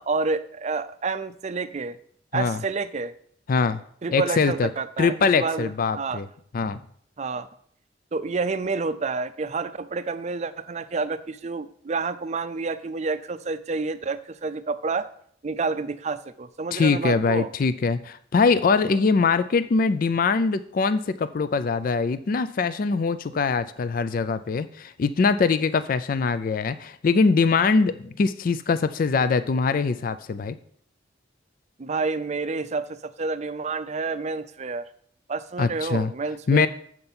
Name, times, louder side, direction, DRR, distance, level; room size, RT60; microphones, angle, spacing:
voice 1, 0.0-2.0 2.3-3.1 4.0-6.2 7.2-7.5 8.1-15.1 15.4-17.5 18.9-19.0 31.8-34.8 35.3-36.7, right 4 dB, 35° right, 13 dB, 0.5 m, -29 dB
voice 2, 3.5-3.8 4.1-4.7 5.0-6.3 6.5-6.8 16.7-30.6 35.6-36.1 36.5-36.7, left 4 dB, 50° left, 13 dB, 0.4 m, -22 dB
7.8 x 6.0 x 5.5 m, 0.63 s
head